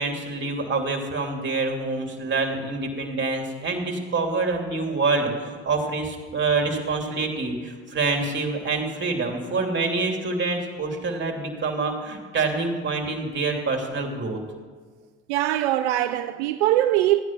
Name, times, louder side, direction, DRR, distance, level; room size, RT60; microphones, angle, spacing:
voice 1, 0.0-14.4, right 3 dB, 35° right, 2.9 m, -26 dB
voice 2, 15.3-17.2, right 13 dB, 85° right, 0.5 m, -22 dB
14.5 x 9.8 x 6.0 m
hypercardioid pair, 65°, 33 cm